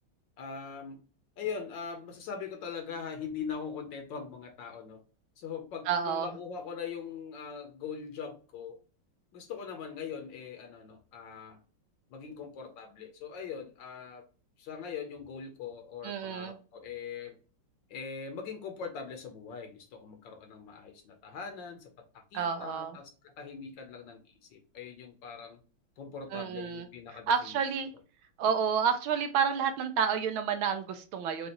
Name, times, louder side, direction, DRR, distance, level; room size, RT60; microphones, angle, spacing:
voice 1, 0.4-1.0 1.4-5.0 5.4-8.8 9.3-11.6 12.1-14.2 14.6-17.4 17.9-25.6 26.0-27.6, left 6 dB, 65° left, 5 dB, 1.3 m, -41 dB
voice 2, 5.9-6.3 16.0-16.6 22.3-23.0 26.3-27.9 28.4-31.5, right 7 dB, 75° right, 8 dB, 1.4 m, -30 dB
5.1 x 2.4 x 2.8 m, 0.38 s
omnidirectional pair, 2.3 m